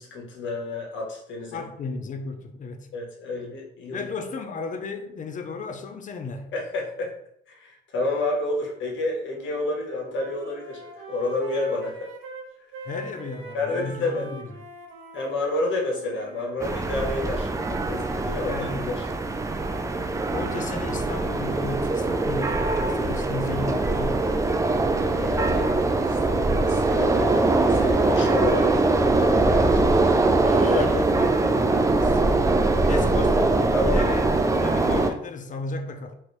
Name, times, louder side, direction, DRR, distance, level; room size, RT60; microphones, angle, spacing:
voice 1, 0.0-1.6 2.9-4.1 6.5-7.1 7.5-12.1 13.5-14.3 15.1-19.0 25.1-30.1 30.7-31.2 33.7-34.0, left 2 dB, 70° left, 1.1 m, -30 dB
voice 2, 1.5-2.9 3.9-6.5 12.9-14.5 18.2-19.1 20.3-24.3 30.3-36.2, left 3 dB, 40° left, 0.5 m, -35 dB
Wind instrument woodwind instrument, 9.3-9.7 10.0-16.5, right 4 dB, 85° right, 0.6 m, -42 dB
sound 1, 16.6-35.1, right 2 dB, 15° right, 0.3 m, -22 dB
3.0 x 2.6 x 3.1 m
cardioid pair, 90°, 20 cm